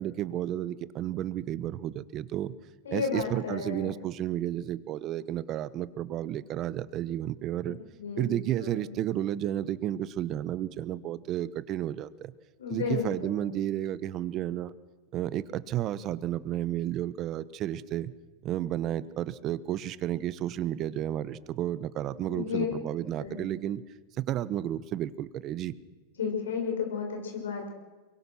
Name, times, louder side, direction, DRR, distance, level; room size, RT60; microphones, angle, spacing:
voice 1, 0.0-2.5 2.9-7.8 8.2-12.3 12.7-14.7 15.1-18.1 18.4-23.8 24.2-25.7, right 12 dB, 40° right, 16 dB, 1.1 m, -32 dB
voice 2, 2.8-3.9 8.0-8.2 8.6-8.7 12.6-13.3 22.2-22.7 23.2-23.5 26.2-27.7, left 6 dB, 85° left, 2 dB, 6.1 m, -32 dB
23.5 x 21.5 x 6.4 m, 1.2 s
hypercardioid pair, 110°, 0 cm